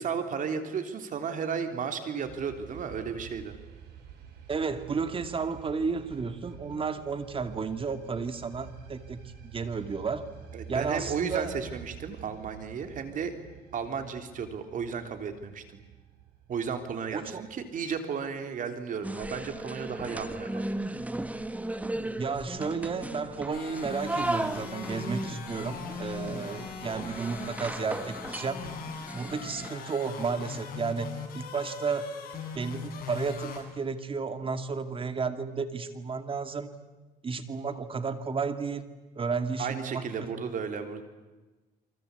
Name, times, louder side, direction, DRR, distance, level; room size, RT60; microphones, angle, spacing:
voice 1, 0.0-3.6 10.5-13.3 13.7-15.8 16.5-20.6 39.6-41.0, right 6 dB, 50° right, 7 dB, 3.4 m, -34 dB
sound 1, 2.2-18.0, right 8 dB, 75° right, 5.9 m, -49 dB
voice 2, 4.5-10.3 10.7-11.5 17.1-17.4 22.2-28.6 29.1-32.1 32.5-36.7 37.2-38.9 39.2-40.3, right 5 dB, 30° right, 9 dB, 2.4 m, -32 dB
sound 2, 19.0-29.7, right 1 dB, 10° right, 1.4 m, -36 dB
sound 3, 23.5-33.6, left 6 dB, 60° left, 7.7 m, -41 dB
28.5 x 24.5 x 8.4 m, 1.2 s
cardioid pair, 110°, 17 cm